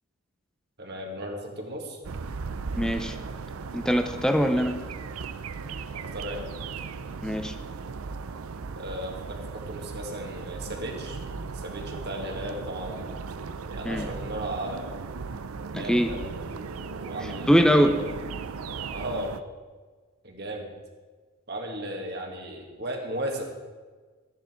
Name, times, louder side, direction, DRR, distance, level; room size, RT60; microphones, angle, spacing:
voice 1, 0.8-2.0 5.9-6.4 8.8-11.2 11.5-13.2 13.7-14.9 15.7-18.0 18.9-19.3 20.2-20.7 21.5-23.4, right 1 dB, 50° right, 1 dB, 1.9 m, -36 dB
sound 1, 2.0-19.4, right 4 dB, 90° right, 0.5 m, -37 dB
voice 2, 2.8-3.2 3.7-4.8 7.2-7.5 13.8-14.1 15.7-16.1 17.5-18.0, equal, 5° left, 7 dB, 0.6 m, -22 dB
13.0 x 10.5 x 4.5 m, 1.4 s
head